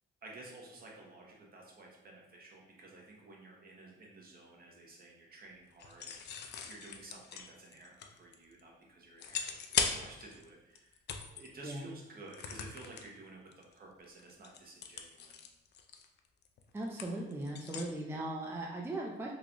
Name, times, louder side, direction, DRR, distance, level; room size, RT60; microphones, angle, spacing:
voice 1, 0.2-15.4, right 2 dB, 50° right, -2 dB, 1.0 m, -53 dB
sound 1, 5.8-8.6 9.2-10.5 10.8-11.5 12.3-13.1 13.5-13.7 14.0-17.9, left 6 dB, 60° left, 0.4 m, -39 dB
voice 2, 16.7-19.3, right 1 dB, 10° right, -2 dB, 0.4 m, -38 dB
3.1 x 2.3 x 3.8 m, 0.91 s
cardioid pair, 90°, 20 cm